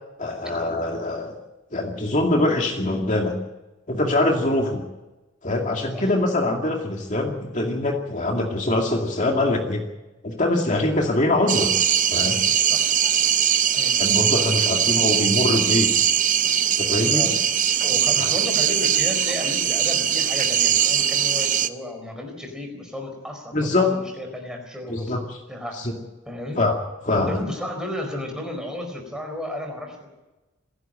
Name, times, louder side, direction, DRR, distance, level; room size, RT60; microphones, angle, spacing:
voice 1, 0.2-1.3 1.7-3.4 3.9-4.8 5.4-9.8 10.2-11.7 12.1-12.4 14.0-15.9 16.8-17.3 23.5-23.9 24.9-25.4 26.6-26.8 27.0-27.3, left 2 dB, 40° left, 1 dB, 2.4 m, -23 dB
sound 1, 11.5-21.7, right 9 dB, 40° right, 0.7 m, -21 dB
voice 2, 17.8-25.1 25.5-25.8 26.2-26.6 27.2-30.1, left 1 dB, 5° right, 3 dB, 4.6 m, -33 dB
27.5 x 11.5 x 8.9 m, 1.1 s
head